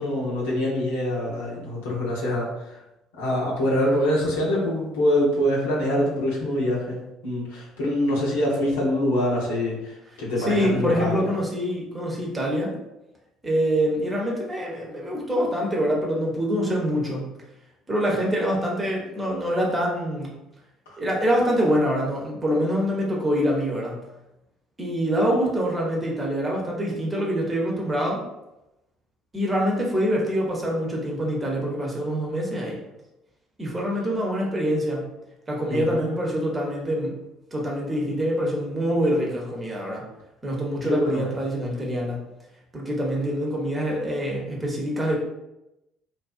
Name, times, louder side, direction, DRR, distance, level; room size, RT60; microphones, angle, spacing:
voice 1, 0.0-2.5 3.2-11.3 35.7-36.2 40.9-41.2, left 1 dB, 70° left, -5 dB, 0.7 m, -25 dB
voice 2, 10.4-12.8 13.4-17.2 17.9-20.3 21.0-24.0 24.8-28.2 29.3-32.8 33.6-35.0 35.5-37.1 37.5-40.0 40.4-42.2 42.7-45.2, equal, 20° right, -2 dB, 0.8 m, -25 dB
2.5 x 2.2 x 2.4 m, 0.92 s
figure-of-eight pair, 55°, 0 cm